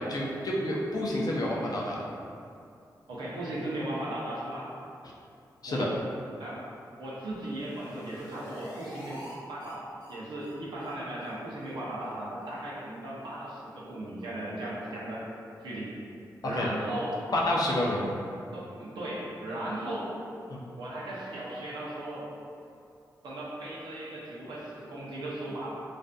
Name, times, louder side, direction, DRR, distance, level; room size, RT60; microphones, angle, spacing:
voice 1, 0.0-2.0 5.6-5.9 16.4-16.7 17.3-18.1 20.5-20.6, left 1 dB, 55° left, -4 dB, 0.5 m, -29 dB
voice 2, 3.1-4.7 5.7-6.0 6.4-6.7 7.0-9.2 9.5-15.3 15.6-16.0 16.4-17.2 18.5-20.1 20.8-22.3 23.2-25.7, right 1 dB, 90° right, -6 dB, 0.6 m, -37 dB
sound 1, 7.3-9.3 9.6-9.7 10.0-10.1 10.4-10.5 10.8-10.9 11.2-11.3 11.6-11.7 12.0-12.1 12.4-12.5, equal, 85° left, 0.9 m, -46 dB
2.5 x 2.4 x 2.2 m, 2.5 s
cardioid pair, 55°, 8 cm